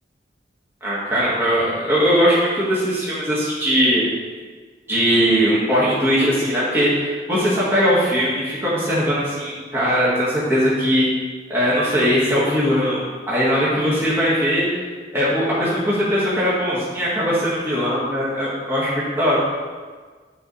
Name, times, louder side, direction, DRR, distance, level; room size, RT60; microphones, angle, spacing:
voice 1, 0.8-4.0 4.9-11.1 11.5-14.7 15.1-18.9 19.2-19.4, equal, 15° right, -9 dB, 1.8 m, -20 dB
11.0 x 4.1 x 3.3 m, 1.5 s
head